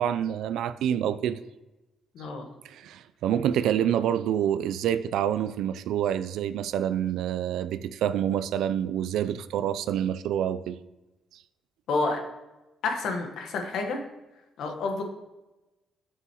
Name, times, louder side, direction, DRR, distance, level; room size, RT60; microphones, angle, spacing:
voice 1, 0.0-1.4 2.6-10.8, right 10 dB, 80° right, 13 dB, 0.3 m, -27 dB
voice 2, 2.1-2.5 11.9-12.2 12.8-14.0 14.6-15.0, left 3 dB, 75° left, 4 dB, 1.3 m, -29 dB
7.0 x 6.9 x 2.9 m, 1.0 s
cardioid pair, 95°, 0 cm